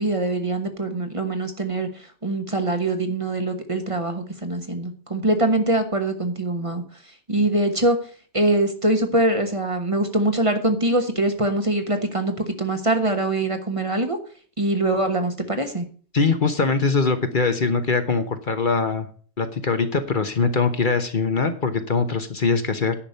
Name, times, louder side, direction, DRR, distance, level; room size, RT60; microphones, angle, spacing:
voice 1, 0.0-6.8 7.3-8.0 8.3-14.2 14.6-15.8, right 2 dB, 30° right, 6 dB, 1.4 m, -23 dB
voice 2, 16.1-19.1 19.4-22.9, left 4 dB, 50° left, 8 dB, 1.2 m, -22 dB
10.0 x 6.1 x 8.1 m, 0.43 s
omnidirectional pair, 1.2 m